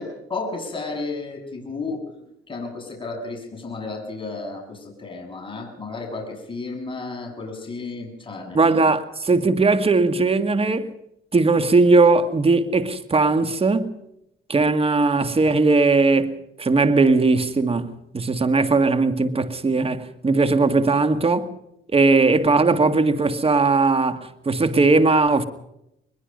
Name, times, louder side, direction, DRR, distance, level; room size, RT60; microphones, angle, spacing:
voice 1, 0.0-8.7, left 3 dB, 25° left, 7.4 m, -33 dB
voice 2, 8.5-10.9 11.3-13.9 14.5-21.5 21.9-25.4, right 3 dB, 30° right, 2.1 m, -19 dB
22.0 x 21.5 x 5.5 m
cardioid pair, 90°, 20 cm